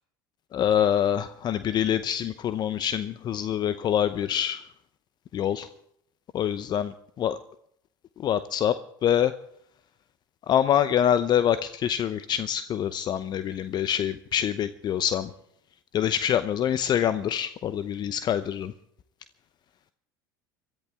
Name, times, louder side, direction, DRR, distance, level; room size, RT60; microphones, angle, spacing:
voice 1, 0.5-4.6 5.3-5.7 6.3-6.9 7.2-7.4 8.2-8.7 9.0-9.3 10.5-15.3 15.9-18.7, left 10 dB, 40° left, 13 dB, 0.8 m, -25 dB
23.0 x 14.0 x 3.6 m, 0.70 s
hypercardioid pair, 80°, 11 cm